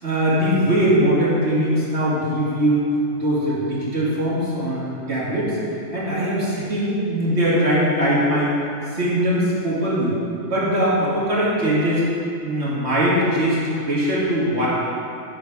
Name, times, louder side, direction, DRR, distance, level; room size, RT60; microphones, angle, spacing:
voice 1, 0.0-2.9 3.2-5.6 5.9-8.5 8.9-10.1 10.5-12.0 12.4-14.7, equal, 55° right, -8 dB, 2.4 m, -21 dB
10.5 x 7.2 x 3.5 m, 2.6 s
omnidirectional pair, 1.4 m